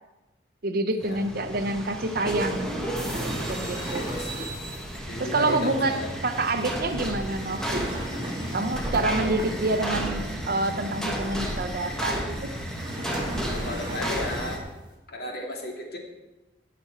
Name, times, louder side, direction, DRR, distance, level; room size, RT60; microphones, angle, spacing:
voice 1, 0.6-2.7 3.2-4.0 5.2-7.9 8.5-12.5, right 2 dB, 55° right, 8 dB, 0.8 m, -27 dB
sound 1, 1.0-14.6, equal, 5° left, 1.4 m, -32 dB
sound 2, 2.5-4.7 7.3-10.0 12.7-14.7, right 1 dB, 25° right, 2.3 m, -36 dB
voice 2, 3.9-4.3 5.1-6.1 6.8-7.1 8.9-9.0 13.5-14.7 15.1-16.0, left 1 dB, 60° left, 0 dB, 2.2 m, -34 dB
17.5 x 6.1 x 4.5 m, 1.1 s
head